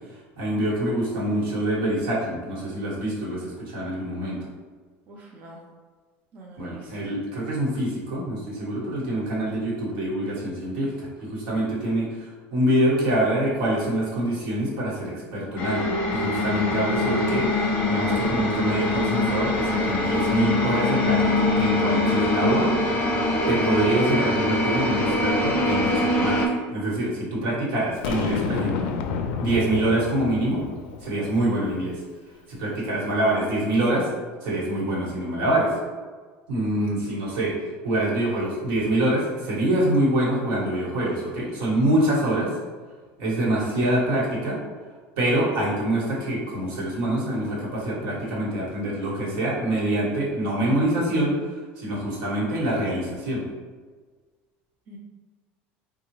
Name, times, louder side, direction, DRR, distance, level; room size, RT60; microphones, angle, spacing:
voice 1, 0.4-4.4 6.6-22.7 23.5-26.4 26.7-28.9 29.4-30.6 31.0-32.0 32.5-34.1 34.4-35.7 36.5-37.5 37.8-42.5 43.2-44.6 45.2-51.4 51.8-53.5, right 1 dB, 85° right, -4 dB, 1.2 m, -25 dB
voice 2, 5.1-5.6 6.3-7.1 54.9-55.0, right 1 dB, 35° right, -2 dB, 0.4 m, -45 dB
sound 1, 15.6-26.5, left 2 dB, 40° left, 0.6 m, -23 dB
Boom, 28.0-31.3, left 6 dB, 80° left, 0.3 m, -29 dB
3.6 x 2.3 x 3.0 m, 1.4 s
cardioid pair, 165°, 5 cm